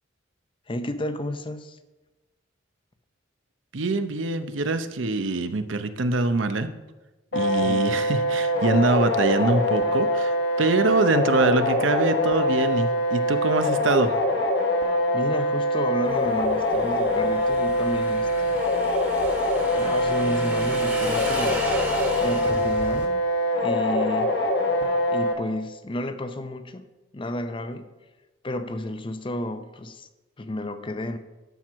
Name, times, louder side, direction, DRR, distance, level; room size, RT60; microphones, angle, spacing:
voice 1, 0.7-1.8 7.6-7.8 15.1-18.6 19.7-21.7 22.2-23.2 23.6-24.3 25.1-26.8 27.1-27.9 28.4-30.1 30.4-31.2, left 1 dB, 25° left, 10 dB, 0.6 m, -31 dB
voice 2, 3.7-6.7 7.3-14.1 24.8-24.9, right 3 dB, 70° right, 10 dB, 0.7 m, -24 dB
sound 1, 7.3-25.3, left 1 dB, 60° left, 1.3 m, -24 dB
Motorcycle / Engine, 16.0-23.1, right 1 dB, 10° right, 1.4 m, -35 dB
12.0 x 4.6 x 6.0 m, 1.1 s
head